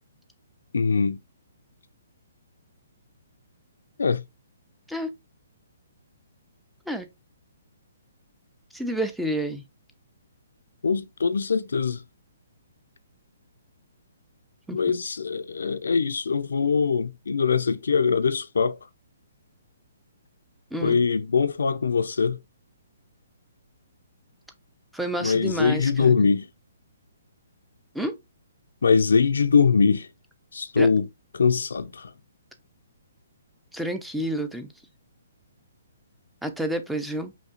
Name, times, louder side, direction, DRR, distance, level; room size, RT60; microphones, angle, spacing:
voice 1, 0.7-1.2 4.0-4.2 10.8-12.0 14.7-18.8 20.8-22.4 25.2-26.5 28.8-30.1 30.5-31.1 31.3-32.1, left 5 dB, 80° left, 0.5 m, -22 dB
voice 2, 8.7-9.6 14.7-14.8 20.7-21.0 24.9-26.3 27.9-28.2 30.8-30.9 33.7-34.7 36.4-37.3, right 1 dB, ahead, 0.5 m, -29 dB
5.1 x 2.8 x 2.5 m
hypercardioid pair, 145°, 0 cm